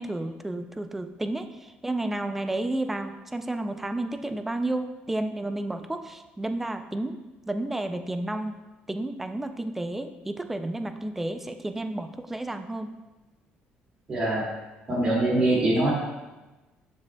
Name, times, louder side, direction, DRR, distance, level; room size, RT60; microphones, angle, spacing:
voice 1, 0.0-7.2 7.5-8.6 8.9-12.9, right 1 dB, 5° right, 7 dB, 0.3 m, -31 dB
voice 2, 14.1-14.5 14.9-15.9, right 1 dB, 25° right, -5 dB, 2.2 m, -23 dB
11.5 x 6.0 x 2.2 m, 1.1 s
cardioid pair, 180°, 4 cm